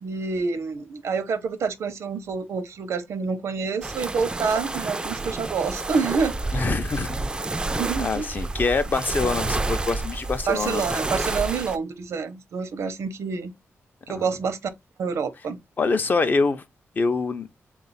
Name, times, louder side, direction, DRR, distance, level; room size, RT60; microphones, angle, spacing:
voice 1, 0.0-6.3 7.8-8.3 10.5-13.5 14.1-14.6 15.0-15.6, right 5 dB, 80° right, 0.6 m, -27 dB
sound 1, 3.8-11.8, right 2 dB, 20° right, 0.3 m, -29 dB
voice 2, 6.5-7.3 8.0-10.8 14.1-14.2 15.8-16.6 17.0-17.5, left 4 dB, 40° left, 0.5 m, -25 dB
3.6 x 2.4 x 4.0 m
wide cardioid pair, 135°, 5 cm